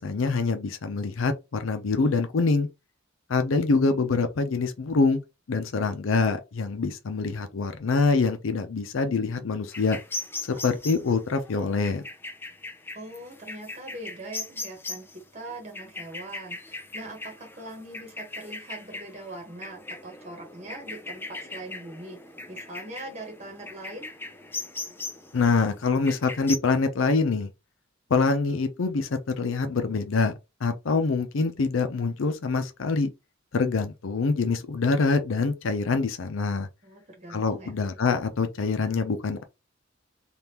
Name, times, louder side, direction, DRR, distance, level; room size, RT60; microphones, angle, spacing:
voice 1, 0.0-2.7 3.3-5.2 5.5-10.0 10.5-12.0 25.3-27.5 28.1-30.3 30.6-33.1 33.5-36.7 37.3-39.4, left 4 dB, 80° left, 0.6 m, -25 dB
sound 1, 9.7-26.6, left 2 dB, 10° left, 0.4 m, -39 dB
voice 2, 12.9-15.1 15.3-22.2 22.5-24.1 36.8-37.8, right 1 dB, 35° right, 1.2 m, -41 dB
3.5 x 2.4 x 2.9 m
head